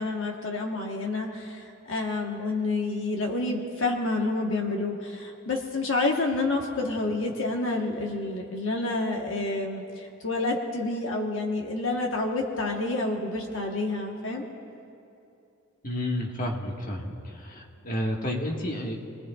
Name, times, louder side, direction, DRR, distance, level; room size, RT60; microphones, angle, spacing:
voice 1, 0.0-14.5, left 2 dB, 70° left, 1 dB, 1.2 m, -29 dB
voice 2, 15.8-19.0, left 1 dB, 45° left, 0 dB, 1.6 m, -31 dB
28.5 x 20.0 x 2.4 m, 2.7 s
head